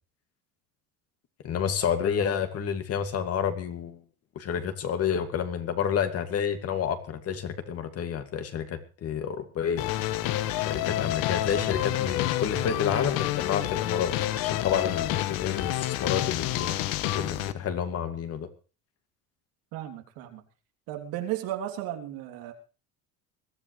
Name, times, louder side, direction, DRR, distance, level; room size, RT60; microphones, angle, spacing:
voice 1, 1.4-4.0 4.4-9.9 10.7-14.1 14.4-16.8 17.1-18.5, left 8 dB, 45° left, 7 dB, 2.3 m, -29 dB
sound 1, 9.8-17.5, left 14 dB, 75° left, 1.2 m, -29 dB
voice 2, 19.7-20.4 20.9-22.5, right 12 dB, 80° right, 4 dB, 3.3 m, -34 dB
21.5 x 14.0 x 3.3 m, 0.35 s
cardioid pair, 135°, 34 cm